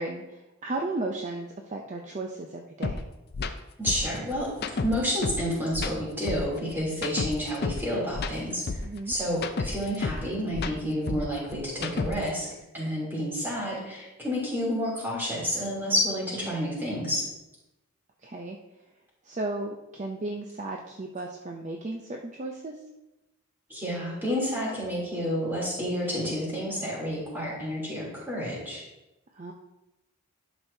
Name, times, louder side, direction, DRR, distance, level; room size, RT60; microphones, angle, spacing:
voice 1, 0.0-3.0 8.8-9.2 16.4-16.7 18.2-18.6 19.2-22.8 29.3-29.5, right 2 dB, 35° right, 2 dB, 0.5 m, -35 dB
sound 1, 2.8-3.0 3.3-3.5 3.9-5.5 5.7-7.9 8.1-10.3 10.5-12.4, left 4 dB, 45° left, 0.4 m, -31 dB
voice 2, 3.8-8.6 9.1-12.5 12.7-17.2 23.7-28.8, equal, 10° right, -6 dB, 2.9 m, -30 dB
11.5 x 6.1 x 2.7 m, 0.98 s
head